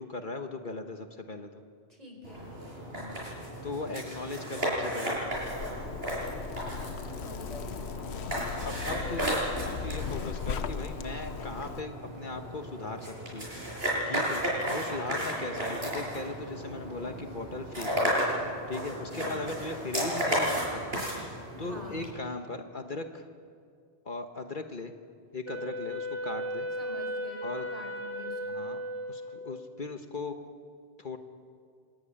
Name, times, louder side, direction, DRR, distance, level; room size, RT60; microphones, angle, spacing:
voice 1, 0.0-1.6 3.0-3.2 3.6-5.3 8.0-8.2 8.6-9.4 9.6-13.5 14.1-14.4 14.7-18.1 18.7-20.9 21.6-23.3 24.0-24.9 25.3-26.7 27.4-27.7 28.4-28.8 29.1-30.4 31.0-31.2, left 3 dB, 50° left, 5 dB, 1.4 m, -38 dB
voice 2, 1.9-2.5 7.1-7.8 9.0-9.2 15.4-15.9 19.1-19.5 21.6-22.1 26.8-28.6, left 2 dB, 35° right, 2 dB, 4.8 m, -47 dB
sound 1, 2.2-22.1, equal, 70° right, 8.1 m, -34 dB
Zipper (clothing), 5.1-11.8, left 7 dB, 90° left, 1.1 m, -38 dB
Wind instrument woodwind instrument, 25.5-29.8, equal, 15° left, 2.4 m, -36 dB
26.5 x 16.0 x 9.9 m, 2.1 s
omnidirectional pair, 1.1 m